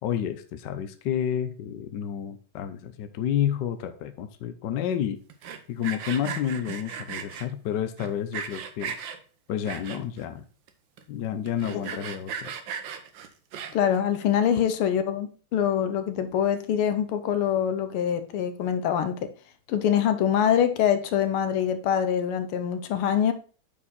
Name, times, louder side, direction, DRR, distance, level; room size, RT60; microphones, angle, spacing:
voice 1, 0.0-5.2 5.7-8.9 9.5-10.4 11.1-12.5, left 9 dB, 65° left, 1.3 m, -30 dB
Sawing, 5.3-7.5 8.0-9.2 9.6-10.2 10.7-10.8 11.0-11.1 11.5-14.0, right 7 dB, 65° right, 1.5 m, -36 dB
voice 2, 13.7-19.3 19.7-23.3, left 9 dB, 85° left, 1.8 m, -24 dB
8.5 x 4.7 x 4.1 m
omnidirectional pair, 2.4 m